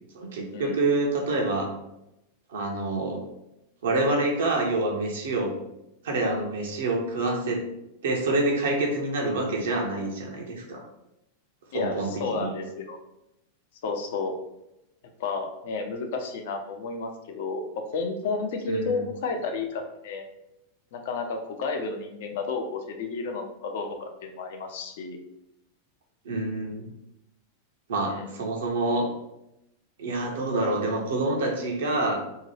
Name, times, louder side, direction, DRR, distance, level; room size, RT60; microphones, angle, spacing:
voice 1, 0.1-1.7 2.5-3.2 3.8-5.5 6.0-7.6 8.0-10.8 11.7-12.5 18.7-19.0 26.2-26.9 27.9-29.1 30.0-32.2, right 2 dB, 60° right, 0 dB, 0.6 m, -27 dB
voice 2, 11.7-13.0 13.8-14.3 15.2-17.6 17.9-20.2 20.9-25.2 28.1-28.4, left 4 dB, 55° left, 5 dB, 0.4 m, -32 dB
2.7 x 2.2 x 3.1 m, 0.86 s
figure-of-eight pair, 90°, 0 cm